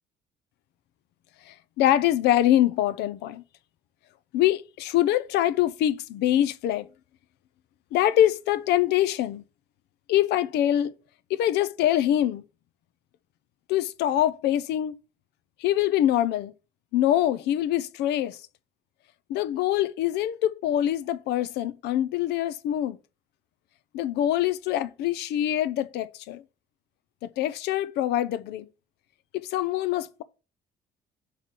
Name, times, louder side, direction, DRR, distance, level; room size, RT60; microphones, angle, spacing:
voice 1, 1.5-3.4 4.3-6.9 7.9-9.4 10.1-10.9 11.3-12.4 13.7-14.9 15.6-16.5 16.9-18.4 19.3-23.0 23.9-26.4 27.2-28.7 29.4-30.2, left 12 dB, 80° left, 0.6 m, -24 dB
5.8 x 4.2 x 4.5 m
cardioid pair, 110°, 17 cm